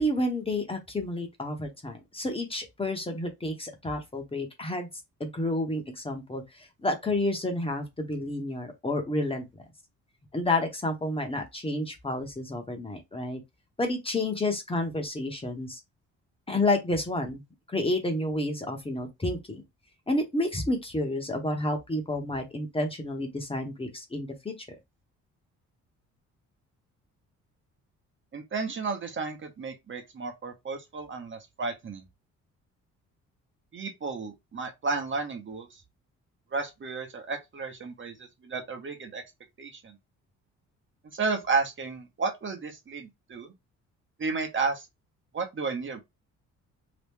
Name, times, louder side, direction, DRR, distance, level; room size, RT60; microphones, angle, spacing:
voice 1, 0.0-4.9 5.2-9.4 10.3-13.4 13.8-15.8 16.5-17.4 17.7-19.6 20.1-24.5, left 1 dB, 20° left, 1.0 m, -30 dB
voice 2, 28.3-32.0 33.7-35.7 36.5-38.1 38.4-39.2 39.6-39.7 41.1-43.5 44.2-44.8 45.3-46.0, right 4 dB, 40° right, 1.0 m, -32 dB
3.0 x 2.5 x 3.5 m
cardioid pair, 90°, 30 cm